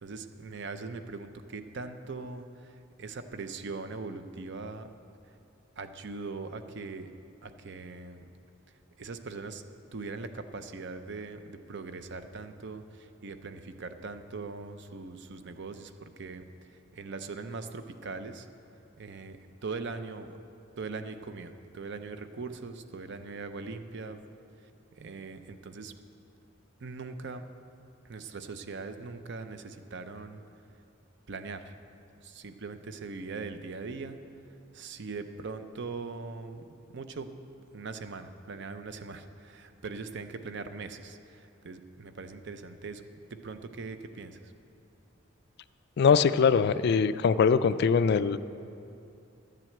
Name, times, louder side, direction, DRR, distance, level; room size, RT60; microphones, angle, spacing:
voice 1, 0.0-4.9 5.8-7.1 7.4-8.2 9.0-9.6 9.9-18.5 19.0-20.4 20.8-24.2 24.9-25.9 26.8-27.5 28.0-30.4 31.3-31.8 32.2-34.2 34.7-36.6 36.9-37.3 37.6-43.0 43.3-44.5, right 4 dB, 55° right, 9 dB, 0.6 m, -41 dB
voice 2, 46.0-48.4, left 6 dB, 50° left, 14 dB, 0.3 m, -22 dB
11.0 x 7.6 x 7.7 m, 2.6 s
head